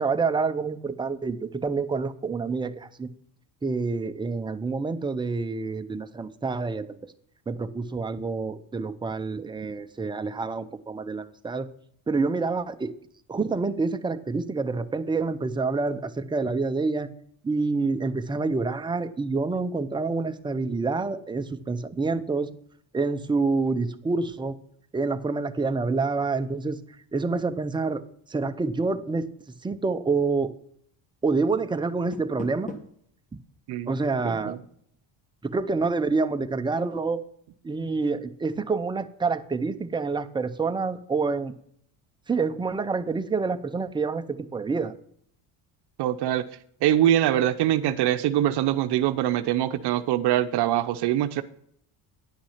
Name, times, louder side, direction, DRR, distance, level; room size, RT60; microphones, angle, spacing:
voice 1, 0.0-3.1 3.6-7.0 7.5-11.7 12.1-12.9 13.3-17.1 17.4-22.5 22.9-24.6 24.9-26.8 27.1-29.3 29.6-30.5 31.2-32.7 33.9-34.6 35.4-37.3 37.6-41.5 42.3-44.9, right 4 dB, 10° right, 9 dB, 0.5 m, -27 dB
Door, 31.8-33.1, left 2 dB, 15° left, 1.5 m, -41 dB
voice 2, 34.2-34.6 46.0-46.4 46.8-51.4, right 12 dB, 60° right, 10 dB, 0.7 m, -23 dB
10.5 x 5.9 x 5.7 m, 0.65 s
cardioid pair, 110°, 45 cm